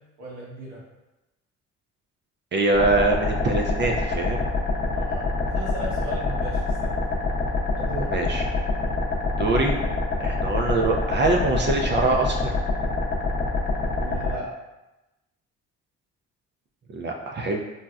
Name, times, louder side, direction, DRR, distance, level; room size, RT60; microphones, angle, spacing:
voice 1, 0.2-0.8 4.9-7.2 7.7-8.1 10.3-10.4 14.0-14.6, right 2 dB, 90° right, -6 dB, 1.2 m, -37 dB
voice 2, 2.5-4.5 8.1-8.4 9.4-9.7 10.2-12.5 16.9-17.6, right 2 dB, 35° right, 1 dB, 0.4 m, -23 dB
sound 1, 2.7-14.3, left 3 dB, 35° left, 0.7 m, -26 dB
4.0 x 2.1 x 2.4 m, 1.0 s
cardioid pair, 90°, 30 cm